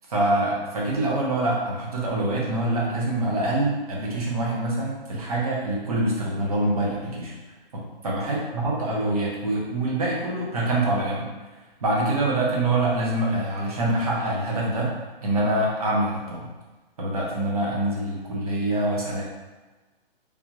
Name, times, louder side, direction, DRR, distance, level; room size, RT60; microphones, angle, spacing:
voice 1, 0.1-7.3 7.7-11.3 11.8-14.9 15.2-16.5 17.0-19.2, right 1 dB, 40° right, -4 dB, 0.7 m, -25 dB
3.4 x 2.4 x 2.9 m, 1.2 s
hypercardioid pair, 175°, 29 cm